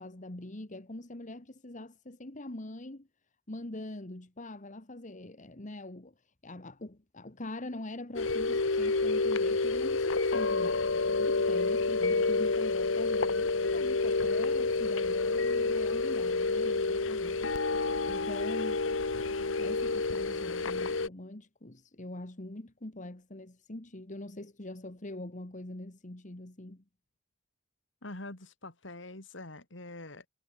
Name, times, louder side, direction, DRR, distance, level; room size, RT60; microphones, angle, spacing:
voice 1, 0.0-3.1 3.5-6.1 6.4-18.8 19.6-26.8, left 1 dB, 40° left, 1.8 m, -43 dB
sound 1, 8.1-21.1, left 3 dB, 90° left, 1.3 m, -29 dB
voice 2, 28.0-30.3, left 2 dB, 70° left, 3.6 m, -44 dB
head